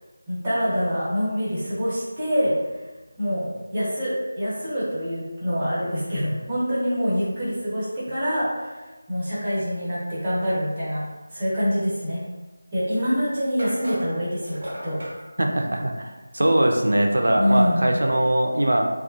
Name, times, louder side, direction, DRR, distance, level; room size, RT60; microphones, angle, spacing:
voice 1, 0.3-2.5 3.2-8.8 9.1-11.0 11.3-12.2 12.7-14.6 14.8-15.0 17.4-17.8, equal, 25° right, -11 dB, 1.2 m, -25 dB
sound 1, 13.6-15.2, equal, 55° right, 1.1 m, -37 dB
voice 2, 15.4-18.9, right 1 dB, 75° right, 3 dB, 0.5 m, -21 dB
3.4 x 2.4 x 2.5 m, 1.2 s
figure-of-eight pair, 165°, 0 cm